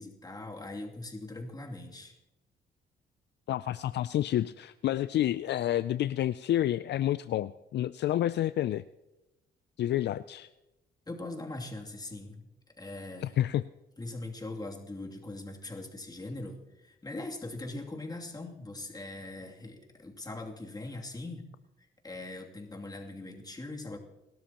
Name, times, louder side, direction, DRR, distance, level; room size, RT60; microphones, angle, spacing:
voice 1, 0.0-2.2 11.1-12.5 12.8-13.4 14.0-21.5 21.8-24.0, left 2 dB, 20° left, 0 dB, 2.7 m, -41 dB
voice 2, 3.5-8.8 9.8-10.5 13.2-13.6, left 12 dB, 60° left, 14 dB, 0.4 m, -29 dB
28.5 x 12.5 x 3.0 m, 0.98 s
cardioid pair, 90°, 20 cm